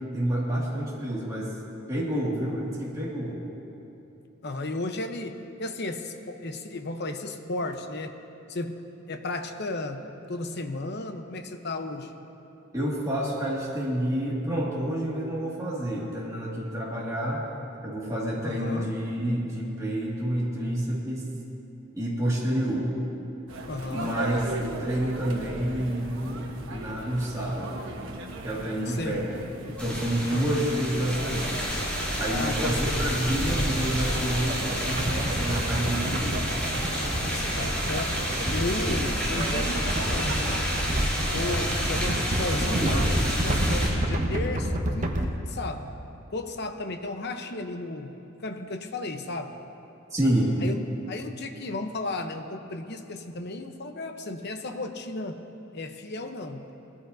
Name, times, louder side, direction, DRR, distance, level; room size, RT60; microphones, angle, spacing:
voice 1, 0.1-1.5 1.9-3.4 12.7-17.5 17.8-21.3 21.9-22.9 23.9-27.9 28.4-29.3 29.7-31.6 32.2-36.5 40.5-40.6 50.1-50.5, right 1 dB, 15° right, -6 dB, 2.0 m, -29 dB
voice 2, 4.4-8.1 8.5-8.8 9.1-12.1 18.4-18.9 23.7-24.1 28.9-29.2 30.3-30.6 32.3-32.8 37.1-38.2 38.5-40.6 41.3-45.9 46.3-49.5 50.6-50.8 51.1-55.4 55.7-56.7, left 2 dB, 55° left, 6 dB, 0.8 m, -34 dB
sound 1, 23.5-43.4, right 2 dB, 70° right, 1.2 m, -38 dB
sound 2, 29.8-43.9, equal, 5° left, 3.2 m, -29 dB
sound 3, 35.0-45.3, equal, 40° right, 1.0 m, -30 dB
20.0 x 14.5 x 2.7 m, 2.8 s
head